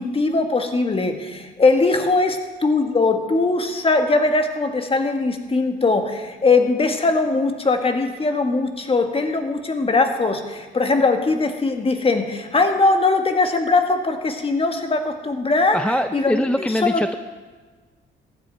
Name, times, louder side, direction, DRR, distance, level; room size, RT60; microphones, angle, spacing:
voice 1, 0.0-15.8 16.1-17.2, left 3 dB, 30° left, 6 dB, 1.4 m, -20 dB
voice 2, 15.7-17.1, left 1 dB, 5° left, 8 dB, 0.4 m, -22 dB
14.5 x 10.0 x 4.4 m, 1.4 s
cardioid pair, 90°, 20 cm